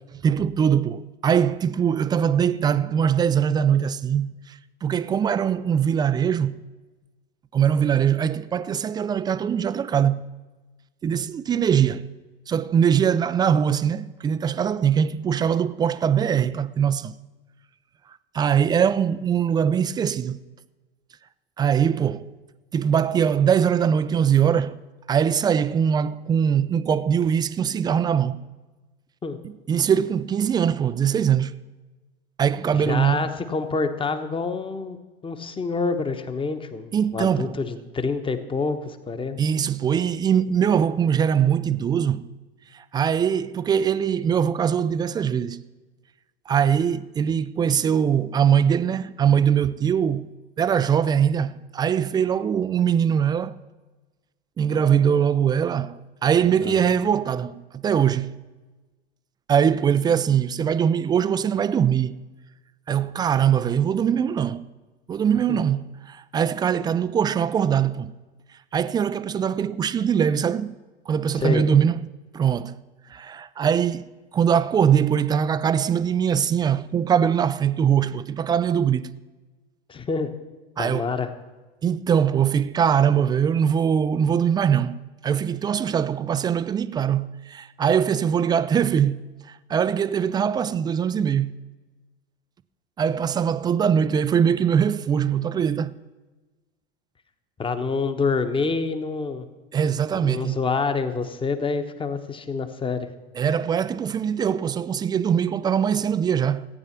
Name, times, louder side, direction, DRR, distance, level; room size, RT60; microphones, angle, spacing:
voice 1, 0.1-6.6 7.5-10.3 11.0-12.1 12.5-17.1 18.3-20.4 21.6-22.3 22.7-24.8 25.1-28.4 29.7-31.5 32.4-33.3 36.9-37.6 39.4-42.3 42.7-45.6 46.5-50.3 50.6-53.6 54.6-58.3 59.5-62.2 62.9-64.7 65.1-68.1 68.7-70.8 71.1-72.0 72.3-72.7 73.1-74.0 74.3-79.1 80.8-81.1 81.8-89.2 89.7-91.6 93.0-95.9 99.7-100.6 103.4-106.7, right 8 dB, 15° right, 0.3 m, -22 dB
voice 2, 32.7-35.0 35.2-39.4 56.6-56.7 65.5-65.6 71.3-71.6 79.9-80.3 80.8-81.3 97.6-99.5 100.1-103.1, left 4 dB, 15° left, 1.1 m, -27 dB
15.0 x 9.0 x 5.9 m
figure-of-eight pair, 85°, 30 cm